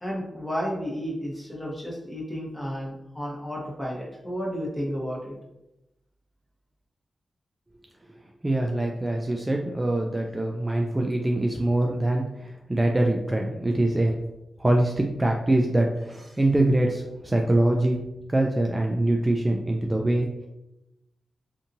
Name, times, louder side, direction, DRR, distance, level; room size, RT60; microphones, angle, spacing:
voice 1, 0.0-5.3, equal, 15° left, -4 dB, 1.1 m, -32 dB
voice 2, 8.4-14.1 14.6-18.0 18.3-20.3, right 1 dB, 25° right, 1 dB, 0.3 m, -24 dB
2.7 x 2.6 x 2.5 m, 0.92 s
cardioid pair, 60°, 0 cm